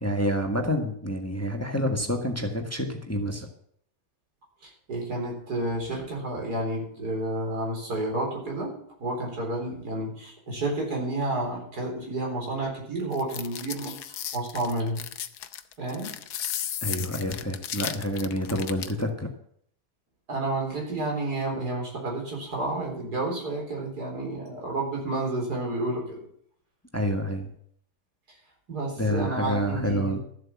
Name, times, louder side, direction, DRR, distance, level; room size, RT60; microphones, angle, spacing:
voice 1, 0.0-3.5 16.8-19.3 26.9-27.5 29.0-30.2, equal, 10° left, 4 dB, 1.5 m, -28 dB
voice 2, 4.6-15.0 15.8-16.1 20.3-26.2 28.7-30.2, right 2 dB, 85° right, 0 dB, 4.5 m, -30 dB
sound 1, 13.1-19.0, left 10 dB, 90° left, 1.3 m, -35 dB
13.5 x 7.8 x 7.2 m, 0.64 s
omnidirectional pair, 1.6 m